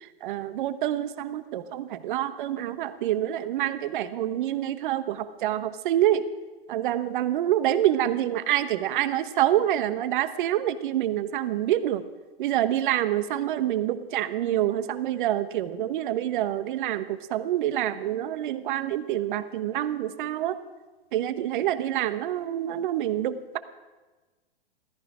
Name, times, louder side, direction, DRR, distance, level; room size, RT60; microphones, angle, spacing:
voice 1, 0.2-6.2 6.7-12.0 12.4-20.6 21.1-23.6, right 12 dB, 55° right, 12 dB, 1.1 m, -27 dB
16.5 x 14.0 x 4.9 m, 1.2 s
hypercardioid pair, 115°, 31 cm